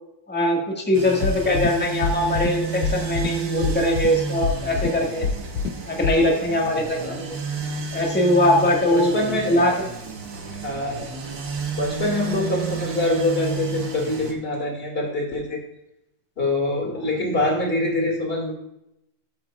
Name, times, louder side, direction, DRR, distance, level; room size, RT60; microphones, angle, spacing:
voice 1, 0.3-5.2 5.9-7.4 7.9-9.1 9.4-9.9, left 1 dB, 5° left, -1 dB, 1.6 m, -21 dB
sound 1, 0.9-14.3, right 5 dB, 60° right, 1.7 m, -32 dB
sound 2, 1.2-1.7 2.0-2.5 2.8-3.3 3.6-4.1 4.4-4.9 5.2-5.7 6.0-6.1, left 6 dB, 80° left, 1.3 m, -24 dB
voice 2, 6.7-7.2 8.9-9.7 10.6-11.1 11.7-15.6 16.4-18.5, left 2 dB, 30° left, 0 dB, 2.5 m, -25 dB
13.0 x 7.8 x 2.4 m, 0.83 s
omnidirectional pair, 2.0 m